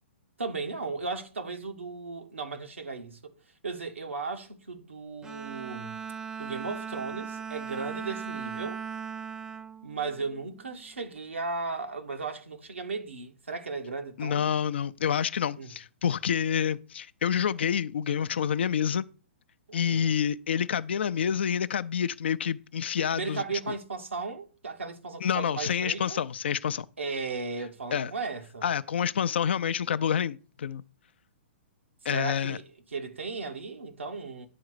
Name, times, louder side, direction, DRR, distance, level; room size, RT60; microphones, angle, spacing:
voice 1, 0.4-3.3 3.6-6.0 6.4-8.8 9.8-14.5 15.6-15.7 19.7-20.1 23.1-26.2 27.0-28.7 32.1-32.6 32.9-34.5, right 4 dB, 80° right, 1.2 m, -36 dB
Bowed string instrument, 5.2-10.7, right 6 dB, 10° right, 0.3 m, -38 dB
voice 2, 14.2-19.1 19.7-23.4 25.2-26.9 27.9-28.1 28.6-30.8 32.0-32.6, left 8 dB, 65° left, 0.4 m, -28 dB
9.4 x 3.9 x 4.8 m
figure-of-eight pair, 120°, 6 cm